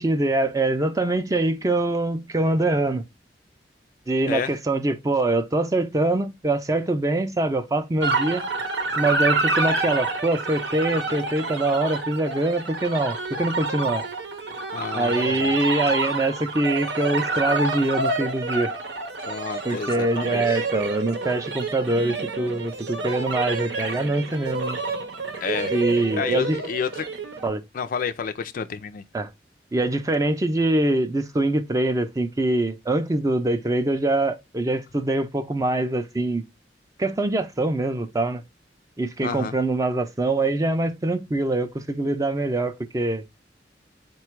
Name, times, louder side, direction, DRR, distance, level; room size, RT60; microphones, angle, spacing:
voice 1, 0.0-3.0 4.1-8.5 9.0-14.0 14.9-18.7 19.6-24.8 25.7-26.6 27.4-27.6 29.1-29.3 29.7-36.5 37.0-38.4 39.0-43.2, right 2 dB, 20° right, 0.4 m, -24 dB
sound 1, 8.0-27.5, right 3 dB, 75° right, 0.8 m, -28 dB
voice 2, 14.7-15.6 19.3-20.6 25.4-25.8 26.1-27.1 27.7-29.0 39.2-39.5, left 6 dB, 50° left, 0.4 m, -30 dB
4.2 x 2.3 x 4.4 m
head